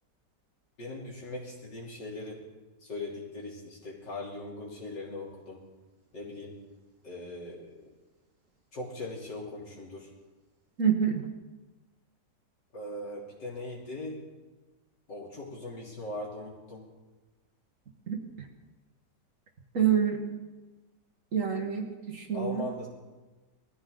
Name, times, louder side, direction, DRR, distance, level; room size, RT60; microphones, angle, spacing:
voice 1, 0.8-2.4 2.8-5.6 6.1-6.5 7.0-7.8 8.7-10.1 12.7-14.2 15.1-16.9 22.3-22.9, left 2 dB, 75° left, -4 dB, 4.0 m, -40 dB
voice 2, 10.8-11.3 18.1-18.2 19.7-20.2 21.3-22.6, right 8 dB, 50° right, 3 dB, 1.8 m, -27 dB
20.0 x 14.5 x 3.9 m, 1.2 s
omnidirectional pair, 1.9 m